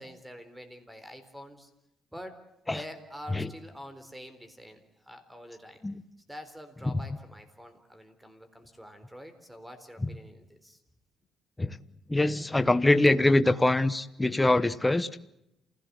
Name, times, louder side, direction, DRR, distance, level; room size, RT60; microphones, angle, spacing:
voice 1, 0.0-1.7 2.1-2.4 2.7-5.8 6.3-10.8, equal, 5° right, 9 dB, 4.0 m, -46 dB
voice 2, 12.1-15.1, left 2 dB, 15° left, 13 dB, 1.1 m, -24 dB
28.5 x 17.0 x 8.4 m, 0.86 s
cardioid pair, 90°, 0 cm